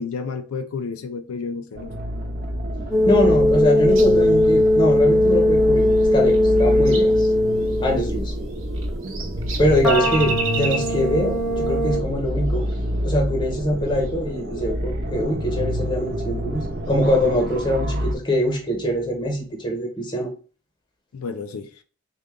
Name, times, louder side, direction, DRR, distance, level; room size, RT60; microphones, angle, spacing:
voice 1, 0.0-2.0 21.1-21.8, left 5 dB, 85° left, 0.4 m, -31 dB
sound 1, 1.7-18.1, equal, 45° right, 0.6 m, -28 dB
sound 2, 2.9-8.2 9.8-12.0, left 1 dB, ahead, 0.5 m, -19 dB
voice 2, 3.1-7.3 7.8-8.3 9.6-12.7 13.0-20.3, left 1 dB, 20° left, 0.8 m, -23 dB
sound 3, 3.9-4.5 5.9-7.2 7.6-7.8 8.5-11.1 12.5-12.8 13.9-14.1 14.7-15.1 16.9-17.2, right 4 dB, 65° right, 0.9 m, -32 dB
3.8 x 2.1 x 3.6 m
head